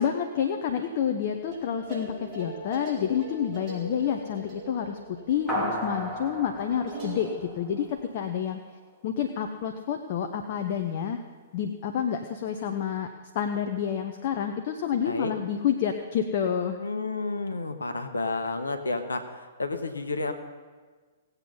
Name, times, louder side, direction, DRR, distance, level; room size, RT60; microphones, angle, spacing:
voice 1, 0.0-8.6 9.0-11.2 11.5-16.8, left 8 dB, 45° left, 5 dB, 0.9 m, -29 dB
sound 1, 1.4-7.4, right 1 dB, 30° right, 4.7 m, -41 dB
sound 2, 5.5-8.2, equal, ahead, 3.1 m, -34 dB
voice 2, 16.8-20.3, left 3 dB, 80° left, 8 dB, 1.2 m, -31 dB
18.5 x 8.2 x 5.6 m, 1.4 s
figure-of-eight pair, 115°, 0 cm